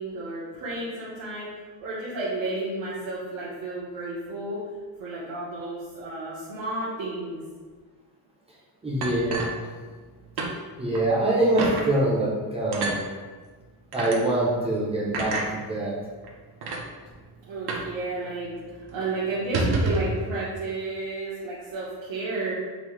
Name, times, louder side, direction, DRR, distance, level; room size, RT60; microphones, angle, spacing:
voice 1, 0.0-1.5 1.8-4.6 5.0-7.4 17.5-22.5, right 2 dB, 70° right, -9 dB, 1.2 m, -32 dB
voice 2, 8.8-9.5 10.8-13.0 13.9-15.9, right 1 dB, 15° right, -5 dB, 0.7 m, -24 dB
sound 1, 9.0-10.1 10.4-10.5 10.9-11.1 11.6-11.9 12.7-13.0 13.9-14.2 15.1-15.5 16.2-16.3 16.6-16.8 17.7-17.9 18.2-18.3 18.6-18.8 19.4-20.1, right 3 dB, 55° right, 0.8 m, -28 dB
5.5 x 2.7 x 3.2 m, 1.4 s
cardioid pair, 175°, 46 cm